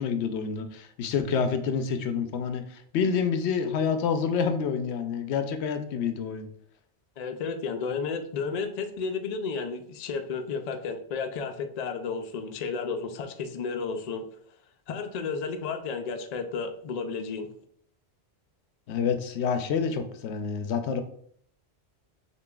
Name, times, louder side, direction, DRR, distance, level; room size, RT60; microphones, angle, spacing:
voice 1, 0.0-6.5 18.9-21.0, left 6 dB, 85° left, 8 dB, 0.8 m, -28 dB
voice 2, 7.2-14.2 14.9-17.5, left 5 dB, 55° left, 6 dB, 0.5 m, -32 dB
6.9 x 2.7 x 2.3 m, 0.64 s
omnidirectional pair, 1.1 m